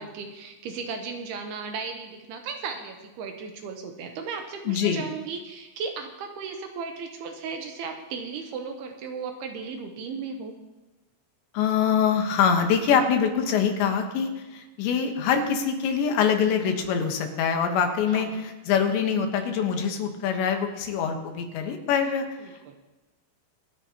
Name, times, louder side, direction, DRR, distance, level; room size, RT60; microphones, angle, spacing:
voice 1, 0.0-10.5 18.1-18.4 22.4-22.8, right 5 dB, 75° right, 4 dB, 2.6 m, -36 dB
voice 2, 4.7-5.1 11.5-22.3, left 7 dB, 80° left, 5 dB, 3.5 m, -24 dB
25.5 x 9.7 x 2.9 m, 1.1 s
omnidirectional pair, 5.1 m